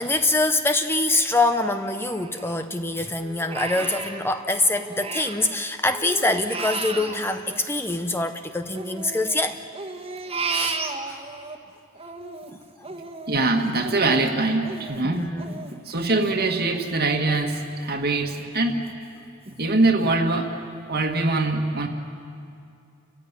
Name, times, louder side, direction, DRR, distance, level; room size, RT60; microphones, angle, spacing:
voice 1, 0.0-9.6 10.5-10.8 11.1-11.2 12.8-12.9 15.0-15.7, left 2 dB, 10° left, 8 dB, 0.7 m, -24 dB
Crying sobbing, 1.1-2.8 3.2-5.6 5.9-8.3 8.7-11.6 11.9-17.4 17.8-18.0 18.4-18.9 19.4-19.5 20.0-20.1, right 4 dB, 30° right, 1.6 m, -34 dB
voice 2, 13.3-15.3 15.9-18.8 19.6-20.5 20.9-21.9, right 2 dB, 50° right, 2 dB, 1.7 m, -23 dB
30.0 x 15.0 x 9.7 m, 2.5 s
head